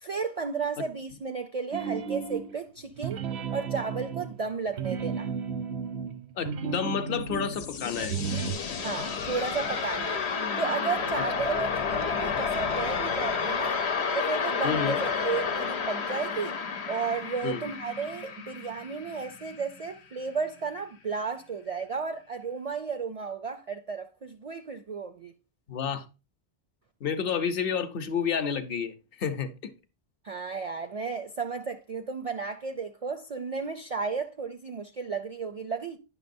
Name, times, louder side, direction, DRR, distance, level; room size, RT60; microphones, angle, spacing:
voice 1, 0.0-3.2 3.5-5.3 8.8-10.2 10.6-13.8 14.1-16.6 16.9-25.3 30.2-36.0, right 5 dB, 55° right, 0.4 m, -33 dB
sound 1, 1.7-2.6 3.0-7.6 8.0-8.5, right 6 dB, 85° right, 1.0 m, -33 dB
voice 2, 6.4-8.1 11.2-11.3 14.6-15.0 17.4-17.6 25.7-26.1 27.0-29.7, left 7 dB, 65° left, 0.8 m, -30 dB
sound 2, 7.0-19.9, left 5 dB, 90° left, 1.0 m, -31 dB
9.7 x 5.9 x 2.5 m
omnidirectional pair, 1.1 m